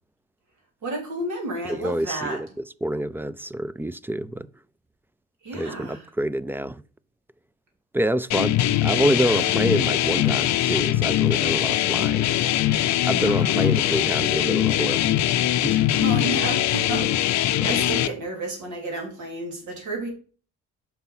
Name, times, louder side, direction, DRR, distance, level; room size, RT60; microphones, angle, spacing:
voice 1, 0.8-2.4 5.4-6.1 9.3-9.5 13.2-13.9 15.9-20.1, right 2 dB, 75° right, 3.2 m, -32 dB
voice 2, 1.7-4.5 5.5-6.8 7.9-12.3 13.0-15.0 15.6-15.9 17.6-17.7, right 1 dB, 5° right, 0.3 m, -27 dB
sound 1, 8.3-18.1, left 13 dB, 65° left, 0.5 m, -22 dB
5.9 x 5.6 x 5.5 m
cardioid pair, 90°, 30 cm